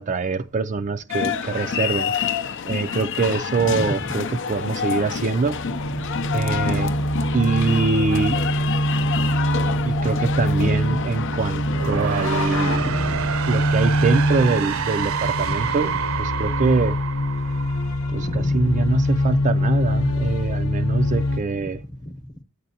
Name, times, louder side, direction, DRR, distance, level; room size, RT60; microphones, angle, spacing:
voice 1, 0.0-2.1 2.7-4.2 4.5-5.6 6.3-6.9 7.3-8.4 9.8-12.9 13.5-15.9 16.2-17.0 18.1-21.8, right 4 dB, 35° right, 0.3 m, -24 dB
sound 1, 1.1-12.8, left 7 dB, 60° left, 0.5 m, -28 dB
voice 2, 3.6-4.0 6.0-6.8 12.7-13.4 15.5-15.8 18.2-18.8 21.5-22.3, left 1 dB, 20° left, 0.9 m, -34 dB
sound 2, 4.9-21.4, equal, 75° left, 0.9 m, -24 dB
sound 3, 11.6-18.5, right 6 dB, 65° right, 0.7 m, -28 dB
9.9 x 8.1 x 2.8 m
head